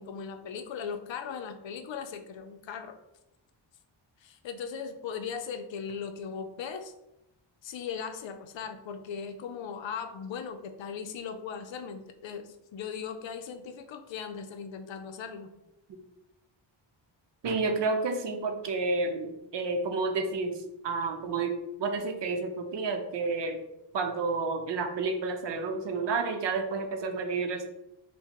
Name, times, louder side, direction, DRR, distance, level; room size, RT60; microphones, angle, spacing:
voice 1, 0.0-3.0 4.2-6.9 7.6-15.5, left 6 dB, 70° left, 8 dB, 0.6 m, -38 dB
voice 2, 17.4-20.5 20.8-21.5 21.8-23.6 23.9-27.6, right 3 dB, 65° right, 4 dB, 0.7 m, -30 dB
5.8 x 2.2 x 2.9 m, 0.89 s
wide cardioid pair, 100°, 47 cm